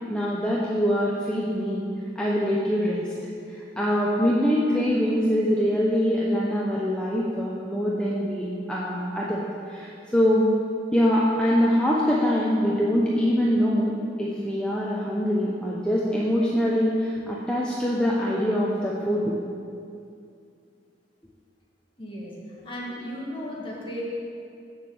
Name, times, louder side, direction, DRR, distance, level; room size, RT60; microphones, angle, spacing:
voice 1, 0.1-1.8 2.2-3.0 3.5-10.5 10.9-19.3, equal, 5° left, -5 dB, 0.8 m, -24 dB
voice 2, 22.0-24.0, equal, 30° left, -5 dB, 2.2 m, -35 dB
8.2 x 7.3 x 7.1 m, 2.4 s
head